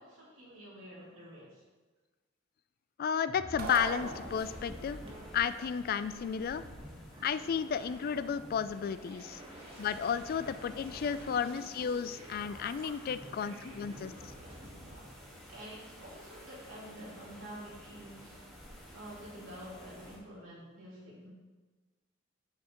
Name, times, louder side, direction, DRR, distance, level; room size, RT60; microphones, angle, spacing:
voice 1, 0.0-1.6 9.3-9.5 10.3-10.5 10.9-11.2 13.1-15.1 15.5-18.4 18.9-21.3, equal, 75° right, -7 dB, 2.6 m, -50 dB
voice 2, 3.0-5.0 5.3-6.6 7.2-9.4 9.8-14.1, left 7 dB, 45° left, 13 dB, 0.3 m, -33 dB
sound 1, 3.3-14.9, equal, 30° right, 1.1 m, -50 dB
sound 2, 3.6-4.9, right 2 dB, 50° right, 0.9 m, -40 dB
sound 3, 3.8-20.2, equal, ahead, 1.5 m, -52 dB
8.7 x 7.1 x 3.0 m, 1.3 s
head